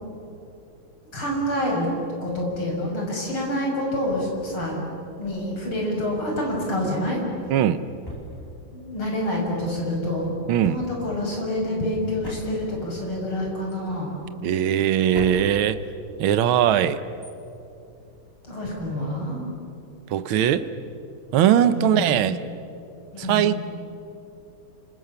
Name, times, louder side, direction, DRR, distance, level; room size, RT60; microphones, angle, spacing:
voice 1, 1.1-1.9 2.2-4.8 5.2-7.2 8.7-10.3 10.7-14.1 18.4-19.5 21.7-22.2 23.1-23.5, left 1 dB, 90° left, -1 dB, 7.0 m, -27 dB
Drawer open or close, 4.2-5.8 6.6-9.1 9.3-9.4 9.9-18.7, equal, 10° left, 4.0 m, -43 dB
voice 2, 7.5-7.8 10.5-10.7 14.4-15.8 16.2-17.0 20.1-20.7 21.3-22.4 23.2-23.6, right 10 dB, 80° right, 12 dB, 1.7 m, -20 dB
29.5 x 26.0 x 6.9 m, 2.7 s
omnidirectional pair, 2.3 m